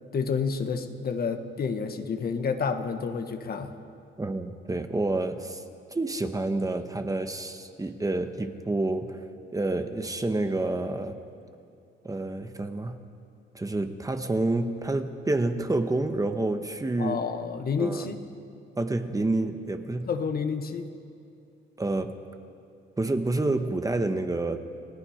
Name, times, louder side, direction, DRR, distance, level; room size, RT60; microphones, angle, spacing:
voice 1, 0.1-3.7 17.0-18.2 20.1-20.9, left 5 dB, 50° left, 7 dB, 1.5 m, -29 dB
voice 2, 4.2-5.6 5.9-9.2 9.5-11.2 12.0-13.0 13.5-17.2 17.8-18.1 18.8-20.1 21.8-22.2 23.0-24.6, right 2 dB, 15° right, 7 dB, 1.2 m, -28 dB
29.5 x 17.5 x 5.1 m, 2.5 s
cardioid pair, 90°, 20 cm